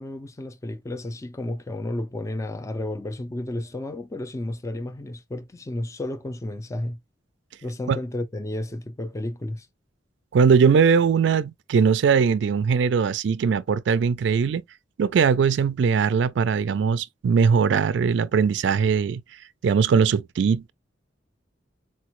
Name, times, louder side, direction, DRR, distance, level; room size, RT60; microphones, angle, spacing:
voice 1, 0.0-7.0 7.6-9.7, left 1 dB, 15° left, 0.3 m, -32 dB
voice 2, 10.3-14.6 15.0-19.2 19.6-20.7, right 6 dB, 70° right, 0.3 m, -20 dB
4.2 x 2.0 x 3.0 m
head